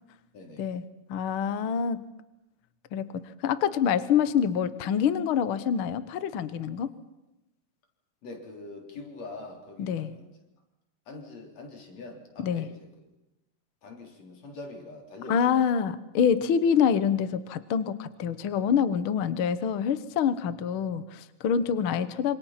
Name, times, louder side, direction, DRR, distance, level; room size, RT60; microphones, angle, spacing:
voice 1, 0.3-0.7 8.2-10.4 11.1-12.9 13.8-15.6 16.6-16.8 20.7-20.8 21.6-21.8, left 2 dB, 50° left, 1 dB, 4.7 m, -44 dB
voice 2, 1.1-2.0 2.9-6.9 9.8-10.1 12.4-12.7 15.3-22.4, left 7 dB, 70° left, 12 dB, 1.2 m, -26 dB
26.5 x 25.5 x 5.8 m, 0.97 s
omnidirectional pair, 3.9 m